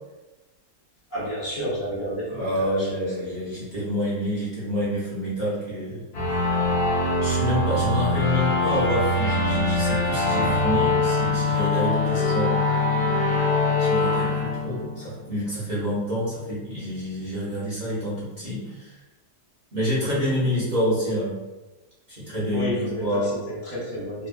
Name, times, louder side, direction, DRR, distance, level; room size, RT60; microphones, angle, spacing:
voice 1, 1.1-3.0 22.5-24.3, equal, 35° left, -8 dB, 0.8 m, -31 dB
voice 2, 2.3-6.0 6.3-6.4 7.2-12.6 13.8-18.9 19.7-21.3 22.1-23.3, equal, 45° right, -9 dB, 0.6 m, -27 dB
sound 1, 6.1-15.5, left 2 dB, 70° left, 0.6 m, -23 dB
2.7 x 2.2 x 2.4 m, 1.1 s
omnidirectional pair, 1.8 m